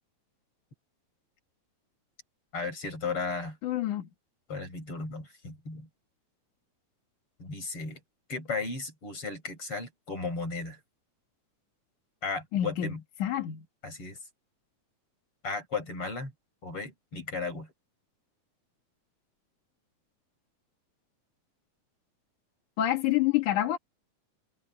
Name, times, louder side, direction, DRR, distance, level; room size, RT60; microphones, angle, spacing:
voice 1, 2.5-3.6 4.5-5.9 7.4-8.0 8.3-10.8 12.2-13.0 13.8-14.2 15.4-16.3 16.6-17.7, left 4 dB, 45° left, 9.0 m, -35 dB
voice 2, 3.6-4.1 12.5-12.9 13.2-13.7 22.8-23.8, left 12 dB, 85° left, 3.4 m, -27 dB
omnidirectional pair, 3.4 m